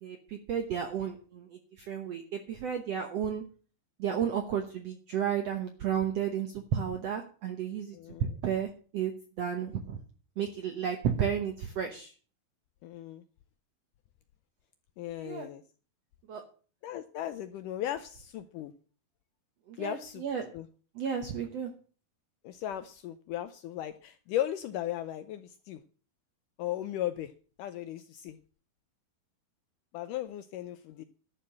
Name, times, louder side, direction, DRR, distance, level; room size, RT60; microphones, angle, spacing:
voice 1, 0.0-3.4 4.0-10.0 10.4-12.1 15.1-15.5 16.3-16.4 19.7-20.5 20.9-21.7, right 8 dB, 75° right, 5 dB, 1.5 m, -33 dB
voice 2, 7.9-8.3 12.8-13.2 15.0-15.6 16.8-18.7 19.8-20.2 20.5-20.7 22.4-25.8 26.6-27.3 27.6-28.4 29.9-31.0, left 12 dB, 80° left, 10 dB, 1.9 m, -36 dB
11.5 x 6.8 x 7.5 m, 0.40 s
omnidirectional pair, 4.3 m